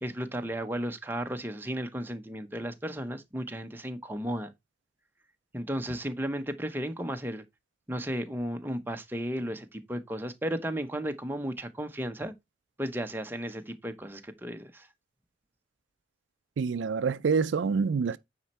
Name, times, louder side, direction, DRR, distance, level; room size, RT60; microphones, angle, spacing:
voice 1, 0.0-4.5 5.5-7.4 7.9-12.3 12.8-14.9, equal, 10° right, 0.8 m, -34 dB
voice 2, 16.6-18.2, right 5 dB, 80° right, 0.4 m, -26 dB
9.2 x 4.4 x 4.2 m
head